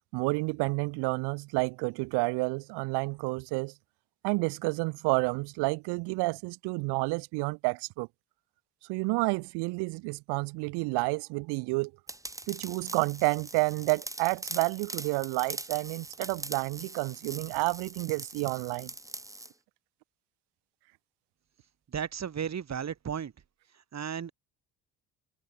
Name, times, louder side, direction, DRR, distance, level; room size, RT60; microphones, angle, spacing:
voice 1, 0.1-3.7 4.2-8.1 8.9-11.9 12.5-18.9, right 27 dB, 75° right, 1.3 m, -30 dB
sound 1, 12.1-19.5, right 2 dB, 10° right, 1.2 m, -42 dB
voice 2, 21.9-23.3 23.9-24.3, right 8 dB, 40° right, 3.0 m, -34 dB
hypercardioid pair, 65°, 41 cm